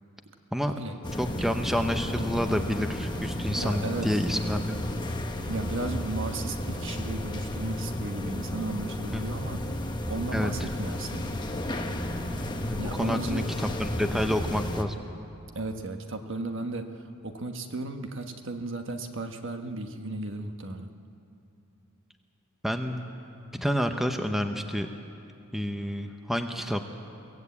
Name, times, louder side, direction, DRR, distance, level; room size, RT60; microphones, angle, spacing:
sound 1, 1.0-14.8, left 1 dB, 20° left, 1.2 m, -32 dB
voice 1, 1.2-4.7 9.1-9.2 10.3-10.7 12.7-14.9 22.6-23.1 23.5-24.9 25.5-26.9, equal, ahead, 5 dB, 0.8 m, -29 dB
voice 2, 3.6-4.2 5.5-9.6 10.1-11.3 12.8-13.5 15.5-20.9, right 2 dB, 60° right, 6 dB, 1.3 m, -35 dB
23.5 x 16.0 x 8.4 m, 2.7 s
head